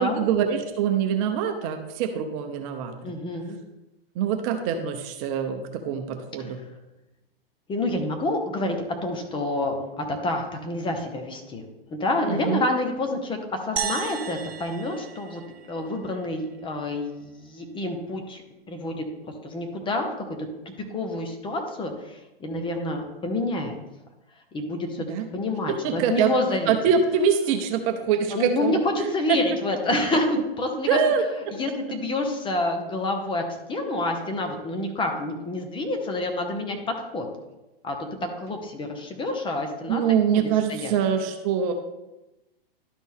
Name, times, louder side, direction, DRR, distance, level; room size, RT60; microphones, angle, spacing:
voice 1, 0.0-3.1 4.1-6.6 12.3-12.6 25.0-25.3 25.7-26.3 26.7-29.1 30.9-31.2 39.9-41.7, right 7 dB, 35° right, 5 dB, 0.8 m, -24 dB
voice 2, 3.0-3.6 7.7-11.6 11.9-15.4 15.7-18.4 18.7-19.1 19.4-20.5 20.8-23.8 24.5-25.1 25.3-26.8 28.3-31.0 31.6-36.8 37.1-37.3 37.8-40.4 40.7-40.9, left 2 dB, 15° left, 4 dB, 1.0 m, -28 dB
sound 1, 13.8-16.2, right 9 dB, 85° right, 0.6 m, -34 dB
12.0 x 4.2 x 3.6 m, 0.99 s
hypercardioid pair, 125°, 30 cm